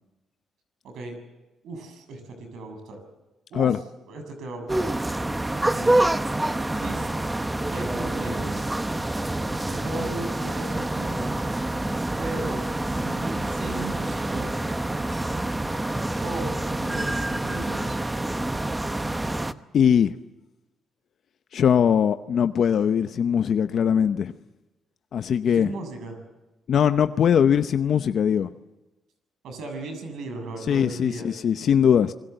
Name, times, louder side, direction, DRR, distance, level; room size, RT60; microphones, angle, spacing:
voice 1, 0.8-1.2 1.6-3.0 3.5-3.8 4.1-4.9 5.7-6.0 6.7-7.2 7.7-8.7 9.5-11.3 12.2-12.7 12.9-14.5 16.2-18.0 25.5-26.2 29.4-31.3, right 2 dB, 75° right, 6 dB, 6.7 m, -36 dB
sound 1, 4.7-19.5, right 1 dB, 15° right, 1.0 m, -27 dB
voice 2, 19.7-20.1 21.5-24.3 25.1-25.7 26.7-28.5 30.7-32.1, left 8 dB, 60° left, 10 dB, 0.8 m, -21 dB
28.0 x 21.0 x 8.0 m, 1.1 s
cardioid pair, 90°, 0 cm